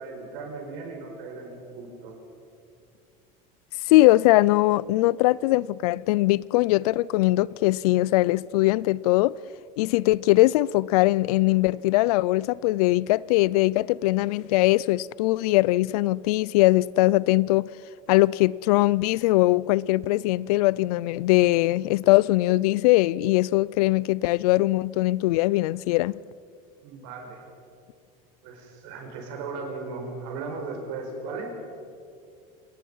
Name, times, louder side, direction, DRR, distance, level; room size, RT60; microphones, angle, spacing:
voice 1, 0.0-2.2 26.8-27.5 28.4-31.5, right 3 dB, 65° right, 5.1 m, -37 dB
voice 2, 3.9-9.3 9.8-17.7 18.1-26.1, left 18 dB, 85° left, 0.4 m, -21 dB
28.0 x 19.0 x 5.6 m
supercardioid pair, 155°, 19 cm